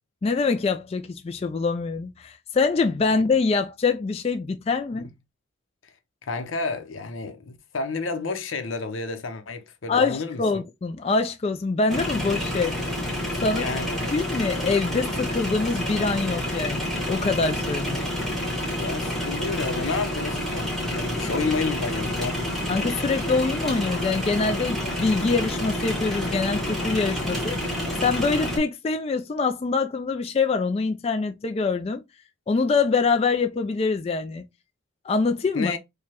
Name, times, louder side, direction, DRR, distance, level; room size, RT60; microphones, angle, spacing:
voice 1, 0.2-5.1 9.9-12.7 13.4-13.7 14.0-18.0 22.7-32.0 32.5-34.4 35.0-35.7, left 4 dB, 30° left, 0.3 m, -25 dB
voice 2, 6.2-10.6 13.5-14.1 18.7-22.6 35.5-35.8, left 4 dB, 85° left, 0.7 m, -30 dB
sound 1, 11.9-28.6, left 1 dB, ahead, 1.1 m, -28 dB
4.8 x 2.2 x 2.8 m
head